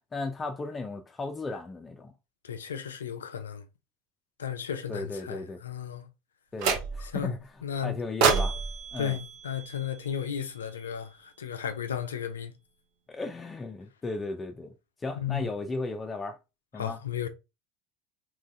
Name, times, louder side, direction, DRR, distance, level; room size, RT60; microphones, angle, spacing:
voice 1, 0.1-2.1 4.9-5.6 6.5-7.4 7.8-8.6 8.9-9.2 13.1-14.7 15.0-16.4 16.7-17.0, left 3 dB, 20° left, 0.4 m, -35 dB
voice 2, 2.4-3.6 4.4-6.1 7.0-7.3 7.6-8.0 9.0-12.5 15.2-15.5 16.8-17.3, left 9 dB, 90° left, 0.4 m, -34 dB
Rotary Phone Pick up and Slam down, 6.6-7.2 8.2-10.4, right 5 dB, 65° right, 0.6 m, -29 dB
3.0 x 2.5 x 2.4 m
hypercardioid pair, 80°, 0 cm